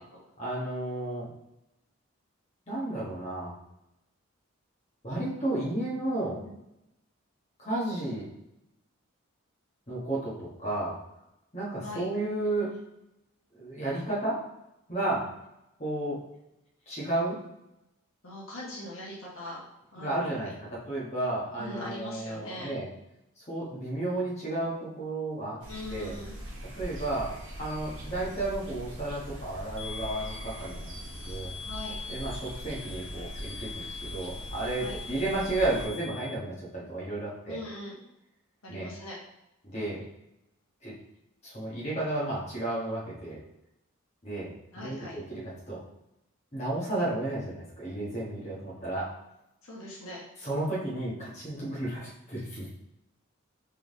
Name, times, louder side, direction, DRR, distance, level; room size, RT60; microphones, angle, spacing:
voice 1, 0.4-1.3 2.7-3.5 5.0-6.4 7.6-8.3 9.9-11.0 11.5-12.8 13.5-14.4 14.9-15.3 15.8-16.2 16.9-17.4 20.0-22.9 23.4-25.6 25.9-26.1 26.8-31.0 31.2-31.5 32.1-37.6 38.7-38.9 39.6-40.0 40.8-40.9 41.4-43.4 44.2-45.8 46.5-49.1 50.4-52.7, right 2 dB, 30° left, -7 dB, 1.3 m, -32 dB
voice 2, 18.2-19.6 19.9-20.1 20.4-20.5 21.6-22.8 25.7-26.4 31.6-32.0 34.8-35.0 37.5-38.0 38.6-39.2 44.7-45.2 49.6-50.2, left 1 dB, 75° left, -5 dB, 1.3 m, -41 dB
sound 1, 25.6-35.9, equal, 60° right, 1.2 m, -41 dB
sound 2, 29.8-36.3, left 5 dB, 5° left, 0.5 m, -43 dB
3.7 x 3.5 x 3.6 m, 0.87 s
head